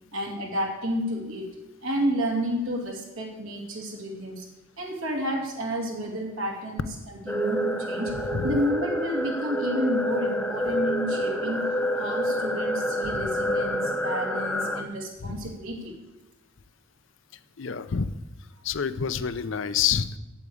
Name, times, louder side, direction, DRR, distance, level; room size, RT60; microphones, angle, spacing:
voice 1, 0.1-1.5 1.8-4.5 4.8-6.9 7.3-8.1 8.4-11.7 12.0-15.9, equal, 85° right, 1 dB, 2.6 m, -30 dB
sound 1, 7.3-14.8, equal, 5° left, 0.7 m, -28 dB
voice 2, 8.3-8.6 13.0-13.3 15.2-15.5 17.6-18.1 18.6-20.2, left 7 dB, 65° left, 13 dB, 0.6 m, -28 dB
8.4 x 8.1 x 8.5 m, 1.0 s
head